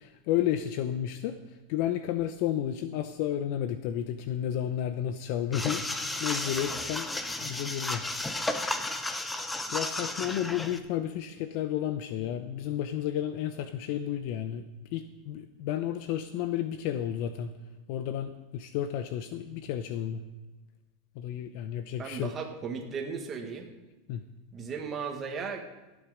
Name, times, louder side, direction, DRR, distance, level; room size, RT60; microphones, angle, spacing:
voice 1, 0.0-1.4 1.7-5.8 6.2-7.1 7.4-8.0 9.4-17.5 17.9-20.2 21.2-22.3 24.1-24.2, left 11 dB, 60° left, 10 dB, 0.7 m, -32 dB
sound 1, 5.5-10.8, left 2 dB, 10° left, 0.8 m, -33 dB
voice 2, 22.0-23.7 24.5-25.6, right 5 dB, 30° right, 4 dB, 1.8 m, -36 dB
14.5 x 8.9 x 5.1 m, 1.1 s
supercardioid pair, 130°, 0 cm